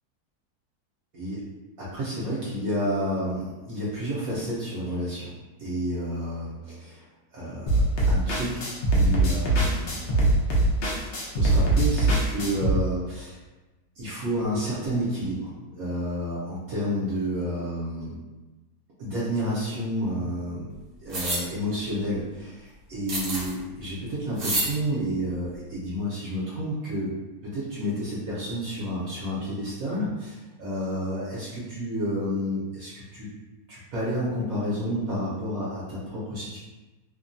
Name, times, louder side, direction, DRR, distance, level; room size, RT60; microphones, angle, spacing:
voice 1, 1.8-5.3 5.6-7.0 7.3-8.7 8.9-10.3 11.1-13.4 14.0-18.2 19.0-20.7 21.0-27.1 27.4-33.3 33.7-36.6, equal, 70° right, -7 dB, 1.0 m, -30 dB
sound 1, 7.7-12.7, right 2 dB, 70° left, 0.5 m, -22 dB
sound 2, 21.1-21.4 23.1-23.5 24.4-24.7, right 2 dB, 50° right, 0.7 m, -28 dB
2.9 x 2.2 x 2.5 m, 1.2 s
omnidirectional pair, 1.7 m